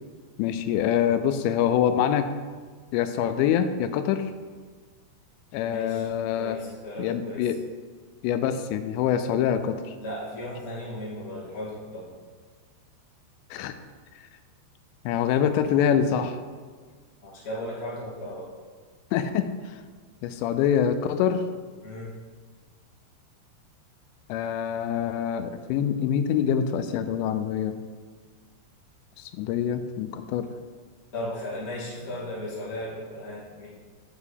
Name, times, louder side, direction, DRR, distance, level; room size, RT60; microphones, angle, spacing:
voice 1, 0.4-2.3 2.9-4.3 5.5-6.6 7.0-7.6 8.2-10.0 13.5-13.7 15.1-16.4 19.1-19.8 20.2-21.4 24.3-27.7 29.2-30.5, left 9 dB, 85° left, 10 dB, 2.7 m, -25 dB
voice 2, 5.6-6.1 6.4-7.4 10.0-12.0 17.2-18.5 21.8-22.1 31.1-33.7, left 1 dB, 35° left, -9 dB, 0.9 m, -36 dB
6.6 x 4.9 x 6.8 m, 1.5 s
omnidirectional pair, 5.2 m